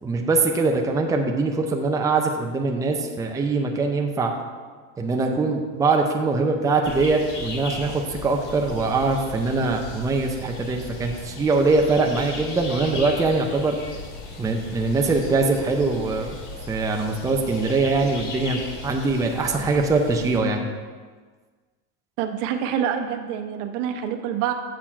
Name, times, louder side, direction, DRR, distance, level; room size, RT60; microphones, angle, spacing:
voice 1, 0.0-4.3 5.0-13.8 14.4-16.3 16.7-20.6, right 3 dB, 10° right, 2 dB, 0.6 m, -22 dB
little forest again, 6.8-20.4, left 2 dB, 45° left, 1.6 m, -37 dB
voice 2, 22.2-24.5, right 9 dB, 65° right, 6 dB, 0.9 m, -26 dB
7.4 x 4.4 x 5.6 m, 1.5 s
supercardioid pair, 115°, 39 cm